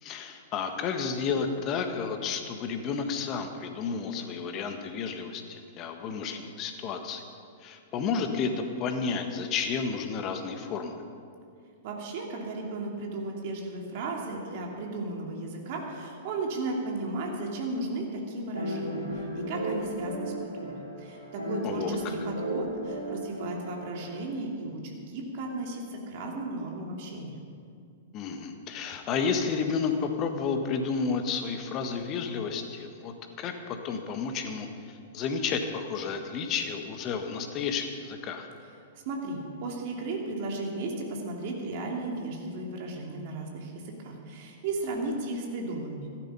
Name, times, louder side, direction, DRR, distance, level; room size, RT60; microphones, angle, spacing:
voice 1, 0.0-7.2 7.6-11.0 21.6-22.1 28.1-38.5, left 5 dB, 35° left, 6 dB, 1.5 m, -31 dB
voice 2, 11.8-27.4 38.9-46.1, right 2 dB, 50° right, 0 dB, 2.7 m, -35 dB
sound 1, 18.5-24.2, equal, 90° right, 2.8 m, -34 dB
14.5 x 12.0 x 5.6 m, 2.4 s
figure-of-eight pair, 100°, 0 cm